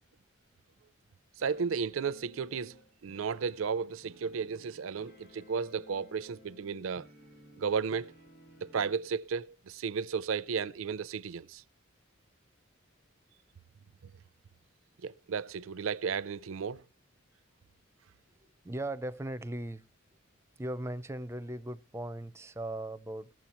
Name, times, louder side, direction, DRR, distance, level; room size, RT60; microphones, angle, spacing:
sound 1, 1.4-9.1, left 1 dB, 50° left, 4.6 m, -58 dB
voice 1, 1.4-7.1 7.6-8.1 8.6-11.6 15.0-16.8, right 6 dB, 85° right, 0.5 m, -34 dB
voice 2, 18.4-19.8 20.6-23.3, right 1 dB, 15° right, 0.4 m, -38 dB
19.5 x 7.5 x 2.9 m
head